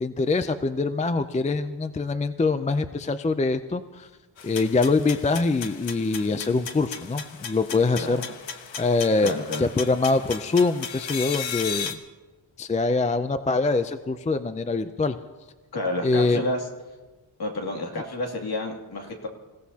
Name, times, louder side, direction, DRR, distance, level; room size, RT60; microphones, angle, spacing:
voice 1, 0.0-4.1 4.4-8.2 8.8-12.0 12.6-15.2 16.0-16.4, left 3 dB, 15° left, 10 dB, 0.4 m, -24 dB
sound 1, 4.4-11.9, left 7 dB, 80° left, 1.2 m, -36 dB
voice 2, 8.0-8.3 9.2-9.7 15.7-16.6 17.4-19.3, left 1 dB, 55° left, 1 dB, 2.6 m, -30 dB
28.0 x 16.5 x 2.8 m, 1.2 s
wide cardioid pair, 160°, 45 cm